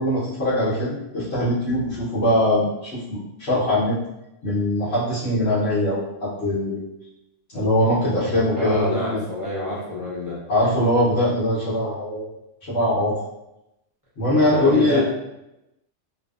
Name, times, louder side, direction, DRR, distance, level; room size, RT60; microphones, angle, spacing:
voice 1, 0.0-4.0 4.4-6.8 7.5-9.2 10.5-12.3 12.7-13.2 14.2-15.0, left 1 dB, 60° left, -11 dB, 1.0 m, -22 dB
voice 2, 8.5-10.4 14.5-15.0, left 1 dB, 25° right, -9 dB, 0.5 m, -27 dB
2.6 x 2.1 x 2.3 m, 0.90 s
omnidirectional pair, 1.3 m